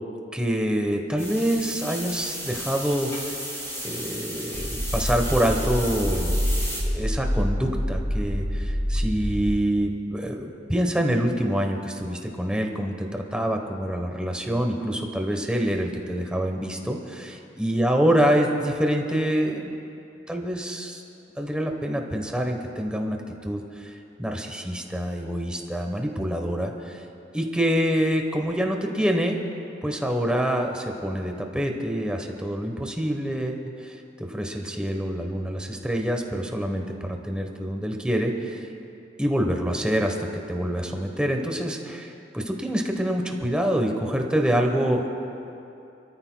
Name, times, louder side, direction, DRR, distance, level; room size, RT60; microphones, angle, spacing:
voice 1, 0.3-3.4 3.8-19.8 20.3-21.0 21.4-27.1 27.3-29.4 29.8-38.7 39.2-45.1, equal, 5° right, 2 dB, 1.0 m, -26 dB
sound 1, 1.2-6.8, equal, 15° left, 4.0 m, -34 dB
sound 2, 4.5-9.5, equal, 65° right, 2.4 m, -26 dB
29.5 x 14.0 x 2.2 m, 2.8 s
head